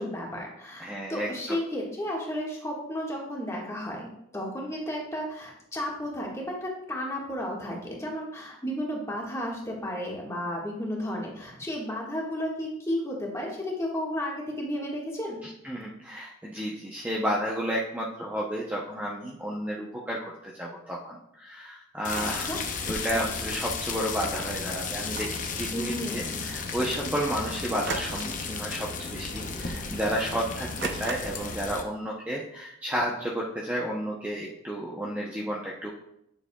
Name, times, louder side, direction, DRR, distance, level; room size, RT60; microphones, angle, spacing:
voice 1, 0.0-15.4 22.1-22.6 25.7-26.4, equal, 15° left, -3 dB, 1.6 m, -33 dB
voice 2, 0.8-1.6 15.4-22.6 22.9-35.9, equal, 10° right, -4 dB, 0.7 m, -32 dB
sound 1, 22.0-31.8, left 4 dB, 40° left, 0.8 m, -34 dB
sound 2, 25.0-25.5 27.9-28.5 28.8-29.1 29.5-29.6 30.8-31.5, right 5 dB, 55° right, 0.5 m, -37 dB
9.8 x 6.7 x 2.3 m, 0.77 s
head